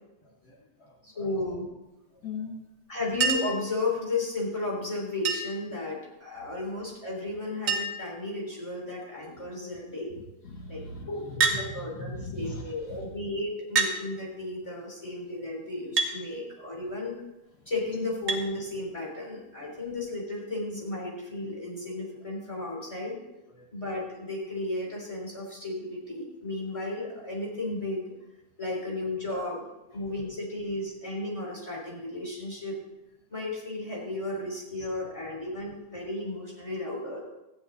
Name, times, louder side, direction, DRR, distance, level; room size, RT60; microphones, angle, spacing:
voice 1, 0.4-1.3 2.2-2.6 9.3-9.5 10.1-13.1 23.5-23.7 28.7-28.8 29.3-29.5 29.9-30.0 34.8-34.9, left 2 dB, 75° left, 1 dB, 0.9 m, -41 dB
voice 2, 1.0-1.7 2.9-10.1 10.7-17.1 17.7-23.2 23.7-28.1 28.6-29.6 29.9-32.8 33.3-37.2, left 2 dB, 10° left, -3 dB, 3.5 m, -34 dB
Chink clink, 3.2-3.6 5.2-5.7 7.0-7.1 7.3-7.4 7.7-8.1 8.9-9.3 11.4-11.6 12.7-12.8 13.8-14.0 16.0-16.2 18.3-18.5 19.9-20.0, right 4 dB, 90° right, 0.7 m, -27 dB
14.5 x 10.0 x 4.1 m, 0.94 s
omnidirectional pair, 3.6 m